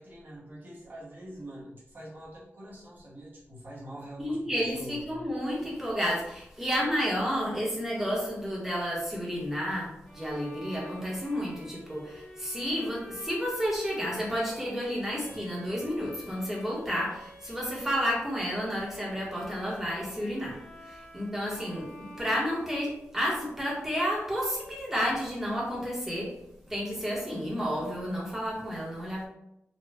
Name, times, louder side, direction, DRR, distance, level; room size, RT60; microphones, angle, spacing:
voice 1, 0.0-5.0, right 1 dB, 45° right, -6 dB, 1.4 m, -45 dB
voice 2, 4.2-20.6 20.8-26.3 26.6-29.3, equal, 10° right, -4 dB, 1.2 m, -31 dB
Bowed string instrument, 10.0-23.5, equal, 20° left, 1.4 m, -48 dB
4.3 x 2.4 x 3.4 m, 0.82 s
wide cardioid pair, 165°, 5 cm